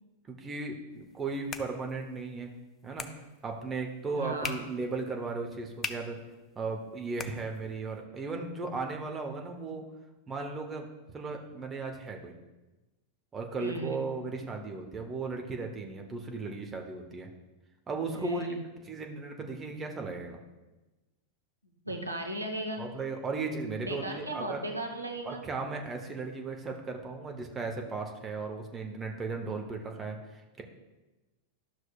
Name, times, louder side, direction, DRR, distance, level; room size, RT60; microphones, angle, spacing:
voice 1, 0.3-2.5 2.8-3.1 3.4-6.2 6.6-9.8 10.3-10.9 11.1-12.3 13.3-17.3 17.9-18.5 18.8-20.4 22.8-24.6 25.2-30.6, right 3 dB, 20° right, 3 dB, 0.9 m, -36 dB
sound 1, 1.0-8.0, left 6 dB, 25° left, 0.5 m, -45 dB
voice 2, 4.2-4.6 13.6-14.1 18.2-18.7 21.8-22.9 23.8-25.4, right 1 dB, 85° right, 3 dB, 0.8 m, -36 dB
12.0 x 6.2 x 2.4 m, 1.1 s
figure-of-eight pair, 90°, 0 cm